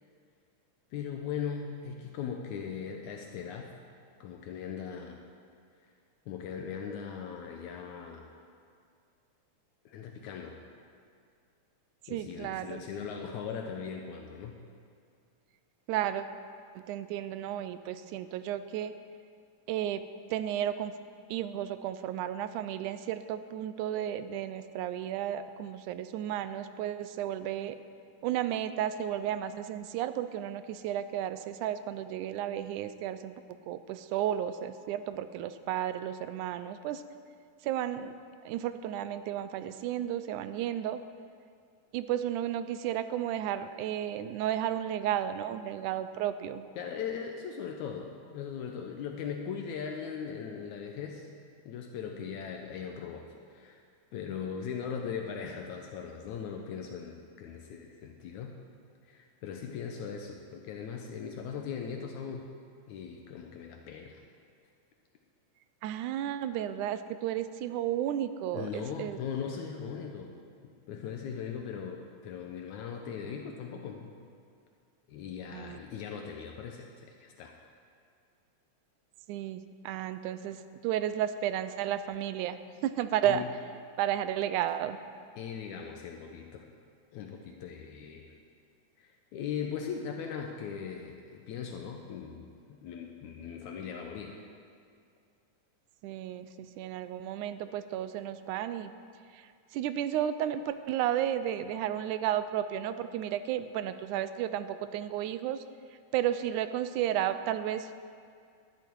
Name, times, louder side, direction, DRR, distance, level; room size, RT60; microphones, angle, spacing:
voice 1, 0.9-3.7 4.2-5.2 6.3-8.4 9.9-10.6 12.1-14.6 46.8-51.3 51.7-53.8 54.1-58.6 59.0-62.5 62.9-64.2 68.5-70.3 70.6-74.1 75.1-77.6 83.2-83.5 85.4-86.7 87.1-88.4 89.0-94.4, left 7 dB, 75° left, 2 dB, 2.2 m, -39 dB
voice 2, 12.1-12.8 15.9-16.3 16.8-18.9 19.7-20.0 20.3-20.9 21.3-27.8 28.2-33.3 33.7-37.0 37.6-38.1 38.5-41.0 41.9-46.7 65.8-69.2 75.5-75.8 79.3-83.4 84.0-85.0 96.0-98.9 99.3-105.6 106.1-107.9, right 11 dB, 85° right, 12 dB, 2.1 m, -33 dB
19.5 x 10.5 x 4.6 m, 2.2 s
omnidirectional pair, 3.5 m